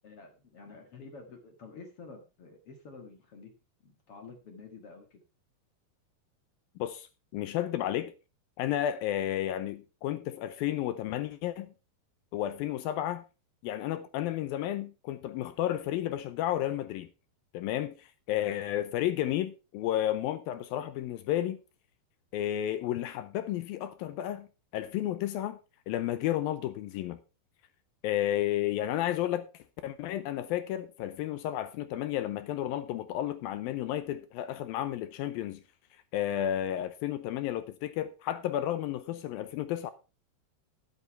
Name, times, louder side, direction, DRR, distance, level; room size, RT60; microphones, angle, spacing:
voice 1, 0.0-3.5 3.8-5.2 39.1-39.2, left 4 dB, 50° left, 1.9 m, -49 dB
voice 2, 7.3-8.1 8.6-11.7 12.3-13.2 13.6-17.1 17.5-21.6 22.3-24.5 24.7-25.6 25.9-27.2 28.0-29.5 29.8-35.6 36.1-39.9, left 12 dB, 80° left, 2.2 m, -32 dB
12.5 x 8.2 x 4.5 m
omnidirectional pair, 4.8 m